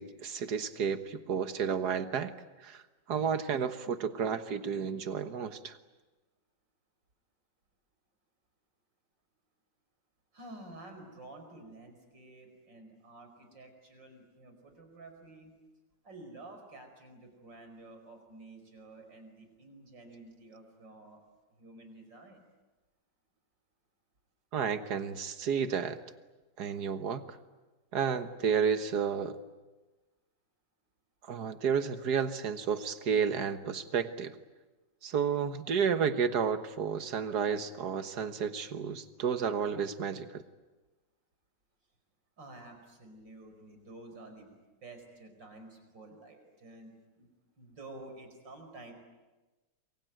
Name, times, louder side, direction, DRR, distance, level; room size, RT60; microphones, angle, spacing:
voice 1, 0.0-2.3 2.6-2.8 3.1-5.8 24.5-26.0 26.6-27.2 27.9-29.4 31.3-34.3 35.0-40.4, right 6 dB, 65° right, 10 dB, 1.9 m, -31 dB
voice 2, 10.3-15.5 16.0-21.2 21.6-22.4 42.4-44.5 44.8-47.3 47.6-48.9, right 2 dB, 80° right, 5 dB, 5.7 m, -51 dB
28.0 x 23.0 x 9.2 m, 1.2 s
omnidirectional pair, 1.9 m